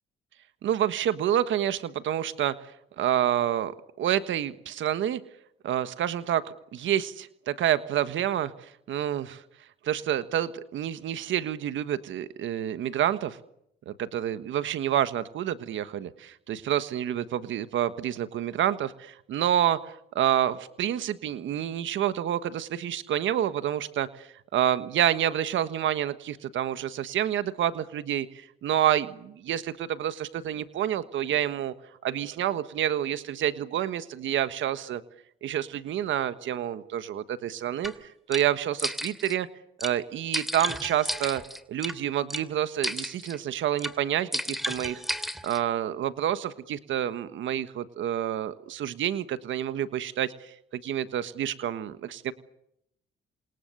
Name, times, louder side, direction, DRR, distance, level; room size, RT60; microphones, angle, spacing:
voice 1, 0.6-2.5 3.0-3.7 4.0-5.2 5.6-9.4 9.8-13.4 13.9-31.7 32.0-35.0 35.4-37.9 38.3-39.5 39.8-41.4 41.7-45.0 45.4-52.3, right 11 dB, 75° right, 12 dB, 1.4 m, -28 dB
sound 1, 37.8-37.9 38.3-38.4 38.8-39.4 39.8-39.9 40.3-41.9 42.3-42.4 42.8-43.4 43.8-44.0 44.3-45.6, equal, ahead, 2.6 m, -32 dB
28.5 x 27.0 x 6.8 m, 0.79 s
cardioid pair, 90°, 20 cm